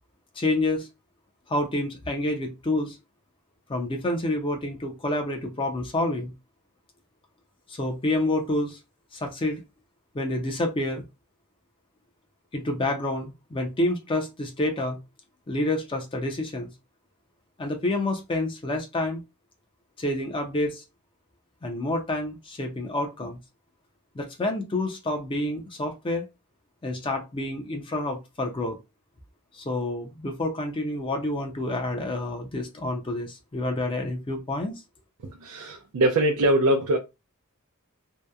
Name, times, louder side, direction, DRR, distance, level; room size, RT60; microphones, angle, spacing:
voice 1, 0.4-0.9 1.5-3.0 3.7-6.3 7.7-8.8 9.1-9.6 10.1-11.0 12.5-15.0 15.5-16.7 17.6-19.2 20.0-20.8 21.6-23.4 24.1-26.3 26.8-28.8 29.5-34.7, left 1 dB, 25° left, 0.5 m, -28 dB
voice 2, 35.2-37.0, right 1 dB, 80° right, 0.5 m, -22 dB
2.8 x 2.0 x 2.3 m
head